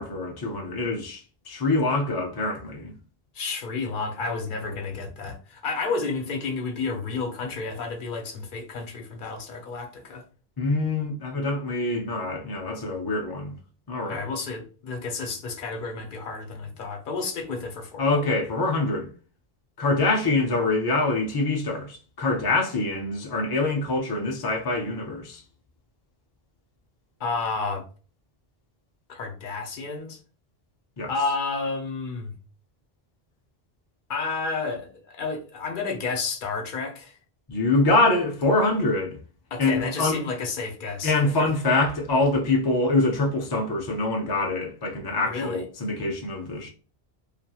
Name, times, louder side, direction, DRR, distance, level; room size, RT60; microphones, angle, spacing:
voice 1, 0.0-2.9 4.6-4.8 10.6-13.5 13.9-14.2 18.0-19.1 19.8-25.4 31.0-31.1 37.5-39.2 39.6-40.2 41.0-46.7, left 2 dB, 35° left, 0.4 m, -25 dB
voice 2, 3.3-10.2 14.0-18.1 27.2-27.8 29.1-30.2 31.1-32.4 34.1-37.2 39.5-41.5 45.2-45.7, left 4 dB, 60° left, 0.8 m, -31 dB
2.8 x 2.4 x 2.3 m
omnidirectional pair, 1.1 m